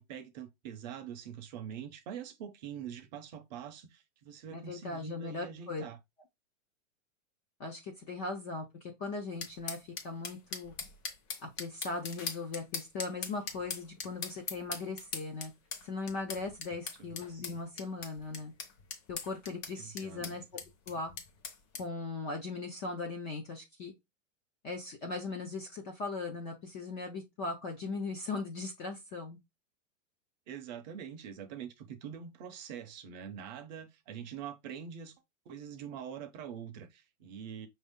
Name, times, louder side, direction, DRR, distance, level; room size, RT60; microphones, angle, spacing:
voice 1, 0.0-6.0 17.0-17.1 19.8-20.2 30.5-35.1 35.5-37.7, right 8 dB, 35° right, 0.6 m, -44 dB
voice 2, 4.5-5.8 7.6-9.8 10.0-10.7 11.4-15.5 15.8-18.5 19.1-20.6 20.9-21.1 21.8-23.9 24.6-29.4, left 3 dB, 20° left, 0.4 m, -39 dB
sound 1, 9.4-21.8, left 5 dB, 35° left, 1.0 m, -41 dB
5.6 x 2.7 x 3.5 m
supercardioid pair, 160°, 39 cm